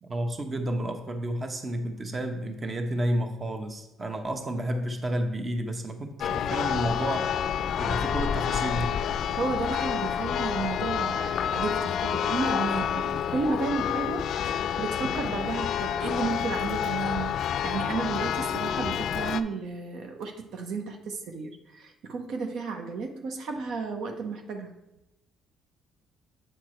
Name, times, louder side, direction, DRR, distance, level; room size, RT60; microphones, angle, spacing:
voice 1, 0.0-7.3 7.8-9.0, right 1 dB, 30° right, 6 dB, 0.9 m, -31 dB
Church bell, 6.2-19.4, left 9 dB, 65° left, 0.4 m, -29 dB
voice 2, 9.4-24.7, right 4 dB, 70° right, 5 dB, 0.8 m, -33 dB
7.9 x 4.6 x 4.4 m, 0.91 s
cardioid pair, 90°, 0 cm